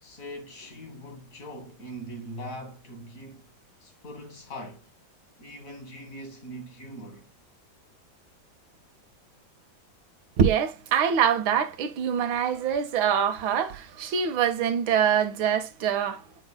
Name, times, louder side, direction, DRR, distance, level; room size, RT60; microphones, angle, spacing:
voice 1, 0.0-3.5 3.8-4.9 5.4-7.3, equal, 45° left, 1.9 m, -41 dB
voice 2, 10.4-16.2, right 8 dB, 80° right, 1.7 m, -24 dB
8.9 x 5.2 x 2.2 m
omnidirectional pair, 2.2 m